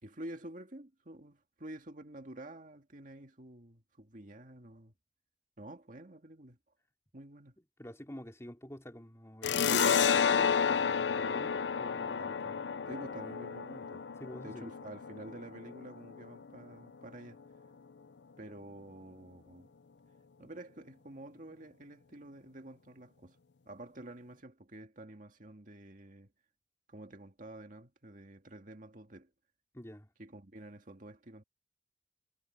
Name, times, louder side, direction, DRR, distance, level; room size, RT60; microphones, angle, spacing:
voice 1, 0.0-4.9 5.6-6.6 7.1-7.5 12.9-14.0 14.4-17.4 18.4-19.7 20.4-23.4 23.7-26.3 26.9-29.3 30.2-31.4, right 1 dB, 45° right, 2.1 m, -49 dB
voice 2, 7.6-12.7 14.2-14.7 29.7-30.1, equal, 15° left, 3.0 m, -48 dB
sound 1, 9.4-16.6, left 6 dB, 80° left, 0.6 m, -31 dB
head